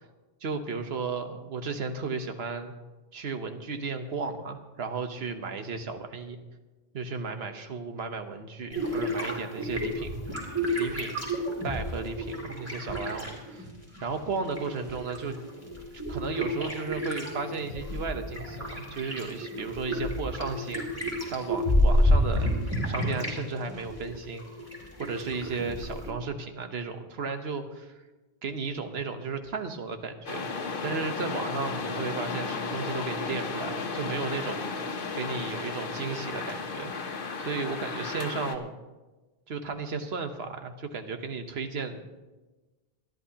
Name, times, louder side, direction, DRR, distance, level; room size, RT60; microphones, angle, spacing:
voice 1, 0.4-2.7 3.1-6.4 6.9-10.1 10.7-11.1 11.6-13.7 14.0-15.4 16.1-22.5 22.8-24.4 25.0-27.9 28.4-30.5 30.8-34.6 35.1-36.9 37.4-38.7 39.5-42.0, right 4 dB, 80° right, 7 dB, 1.3 m, -34 dB
sound 1, 8.7-13.7 14.0-23.4 23.7-26.1, equal, 15° right, 2.9 m, -30 dB
sound 2, 30.3-38.6, left 4 dB, 60° left, 1.1 m, -34 dB
25.0 x 10.5 x 2.9 m, 1.2 s
omnidirectional pair, 1.0 m